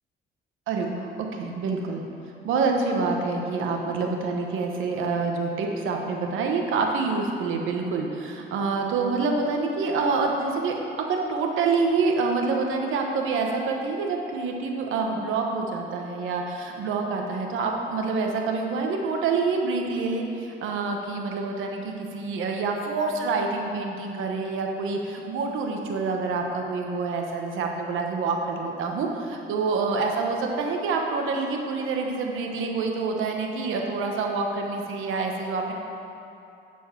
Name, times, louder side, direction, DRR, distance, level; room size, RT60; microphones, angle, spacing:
voice 1, 0.7-1.1 1.4-2.0 2.4-10.8 11.1-35.7, right 4 dB, 85° right, 2 dB, 1.1 m, -27 dB
11.5 x 4.6 x 5.8 m, 2.9 s
cardioid pair, 90°, 20 cm